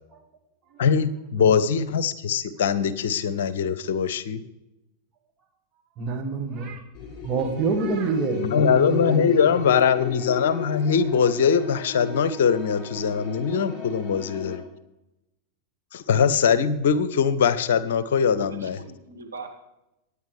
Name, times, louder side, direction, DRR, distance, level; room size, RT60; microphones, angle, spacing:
voice 1, 0.8-4.4 8.5-14.6 15.9-18.8, left 6 dB, 60° left, 15 dB, 0.8 m, -22 dB
voice 2, 6.0-6.8 7.2-9.3, right 4 dB, 30° right, 4 dB, 2.3 m, -28 dB
sound 1, 6.9-14.6, left 6 dB, 35° left, 6.5 m, -34 dB
voice 3, 18.1-19.5, right 4 dB, 75° right, -1 dB, 2.5 m, -41 dB
24.0 x 9.7 x 3.4 m, 0.91 s
figure-of-eight pair, 90°, 0 cm